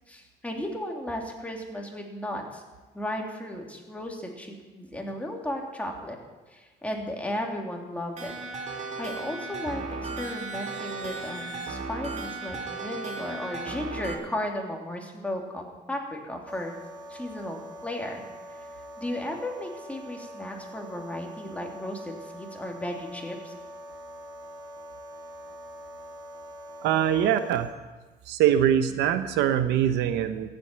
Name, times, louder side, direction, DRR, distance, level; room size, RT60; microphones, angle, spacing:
voice 1, 0.1-2.6 2.9-6.2 6.5-8.3 9.0-16.7 17.1-18.2 18.6-18.7 19.0-23.5, left 1 dB, 10° left, 1 dB, 2.9 m, -35 dB
sound 1, 8.2-14.1, right 3 dB, 40° right, 2.3 m, -35 dB
sound 2, 16.5-27.6, equal, 25° right, 2.8 m, -44 dB
voice 2, 26.8-27.7 28.3-30.5, right 10 dB, 90° right, 10 dB, 1.0 m, -23 dB
15.5 x 8.1 x 9.0 m, 1.2 s
cardioid pair, 110°, 17 cm